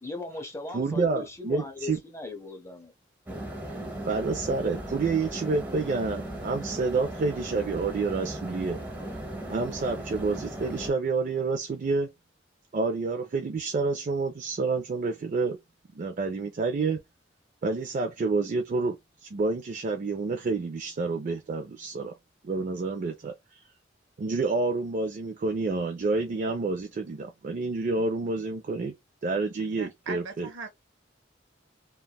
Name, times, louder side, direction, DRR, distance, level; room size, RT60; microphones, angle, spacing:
voice 1, 0.0-2.9, left 2 dB, 15° left, 0.6 m, -39 dB
voice 2, 0.7-2.0 4.1-8.8 9.5-12.1 12.7-15.6 15.9-17.0 17.6-19.0 19.2-22.1 22.4-23.3 24.2-28.9 29.2-30.5, right 3 dB, 45° right, 0.4 m, -28 dB
sound 1, 3.3-10.9, right 1 dB, 10° right, 0.9 m, -37 dB
voice 3, 29.8-30.7, right 4 dB, 85° right, 0.7 m, -39 dB
3.3 x 2.3 x 2.2 m
head